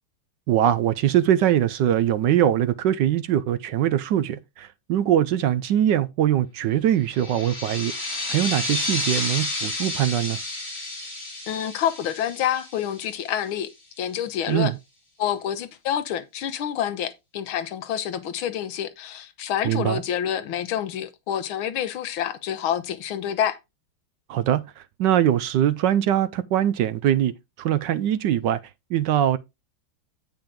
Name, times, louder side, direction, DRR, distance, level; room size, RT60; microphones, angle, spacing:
voice 1, 0.5-7.9 8.3-10.4 14.5-14.8 19.6-20.0 24.3-27.3 27.6-28.6 28.9-29.4, right 11 dB, 70° right, 1.1 m, -22 dB
sound 1, 7.1-13.4, left 2 dB, 30° left, 3.2 m, -31 dB
voice 2, 11.5-13.7 14.0-14.7 15.2-23.6, left 10 dB, 85° left, 1.7 m, -27 dB
8.7 x 5.6 x 3.8 m
omnidirectional pair, 2.2 m